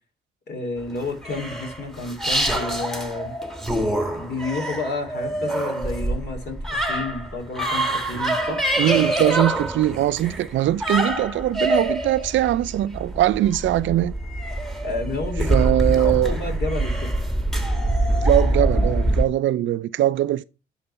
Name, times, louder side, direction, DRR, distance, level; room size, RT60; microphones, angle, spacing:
voice 1, 0.5-3.3 4.1-8.7 14.8-15.7 15.9-17.1, left 3 dB, 55° left, 2.9 m, -31 dB
sound 1, 0.9-19.2, right 1 dB, ahead, 1.4 m, -25 dB
voice 2, 8.5-14.1 15.5-16.4 18.2-20.4, right 13 dB, 70° right, 0.5 m, -21 dB
9.8 x 4.1 x 5.5 m
cardioid pair, 90°, 20 cm